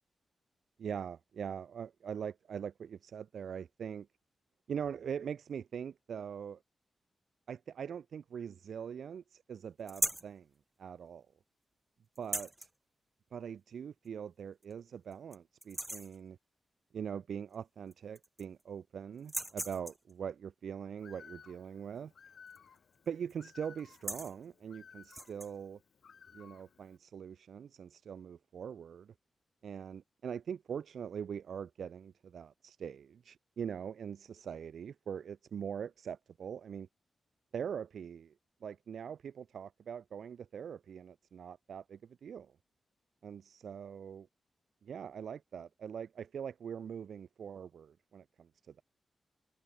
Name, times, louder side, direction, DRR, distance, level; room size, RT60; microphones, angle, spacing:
voice 1, 0.8-4.1 4.7-6.6 7.5-10.5 10.8-11.3 12.2-12.5 13.3-16.4 16.9-22.1 23.1-25.8 26.3-29.1 29.6-36.9 37.5-38.3 38.6-42.5 43.2-44.3 44.8-48.8, right 7 dB, 80° right, 1.3 m, -42 dB
sound 1, 9.9-10.3 12.2-12.7 14.1-14.2 14.6-14.7 15.1-15.4 15.6-16.2 17.5-17.6 17.9-18.6 19.2-20.1 22.5-22.8 23.1-23.3 23.8-24.4 25.0-25.5, right 1 dB, 15° right, 3.0 m, -38 dB
Bird, 21.0-27.0, left 6 dB, 65° left, 4.4 m, -58 dB
cardioid pair, 80°, 0 cm